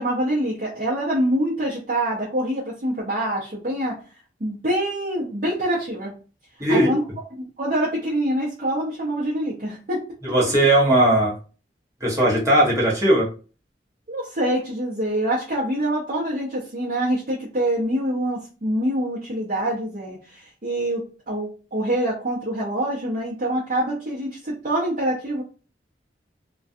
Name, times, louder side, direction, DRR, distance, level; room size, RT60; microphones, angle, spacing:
voice 1, 0.0-6.1 6.7-7.0 7.4-10.0 14.1-25.4, right 1 dB, 45° right, -6 dB, 0.7 m, -25 dB
voice 2, 10.2-11.3 12.0-13.3, right 1 dB, 15° right, -6 dB, 0.9 m, -18 dB
2.3 x 2.2 x 2.6 m, 0.36 s
head